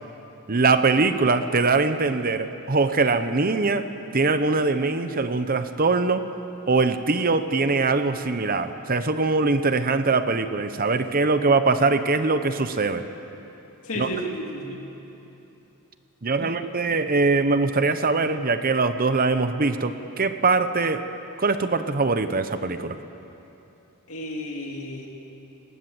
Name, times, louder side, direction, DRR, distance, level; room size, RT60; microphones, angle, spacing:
voice 1, 0.5-3.9 4.1-6.3 6.7-13.0 13.9-14.1 16.2-21.1 21.4-23.0, right 3 dB, 40° right, 10 dB, 0.9 m, -22 dB
voice 2, 13.8-14.8 16.4-16.5 24.1-25.1, equal, 65° left, 0 dB, 2.5 m, -32 dB
28.5 x 19.5 x 7.9 m, 3.0 s
head